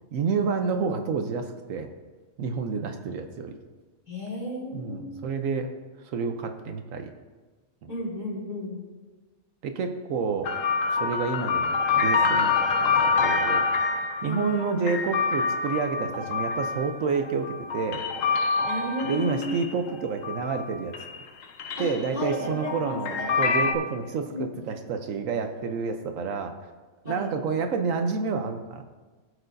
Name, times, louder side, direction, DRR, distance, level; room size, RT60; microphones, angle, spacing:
voice 1, 0.1-1.9 2.4-3.6 4.7-5.7 6.1-7.1 9.6-10.5 11.0-13.6 14.2-18.0 19.1-20.9 21.8-26.5 27.0-28.8, right 5 dB, 75° right, 6 dB, 1.1 m, -29 dB
voice 2, 4.1-5.0 7.9-8.8 14.2-14.8 18.6-19.6 21.8-23.6 24.1-24.6 27.0-27.3, left 1 dB, 30° left, -7 dB, 3.4 m, -33 dB
sound 1, 10.4-20.7 20.9-23.7, left 4 dB, 70° left, 1.1 m, -26 dB
17.5 x 6.4 x 2.6 m, 1.3 s
omnidirectional pair, 1.4 m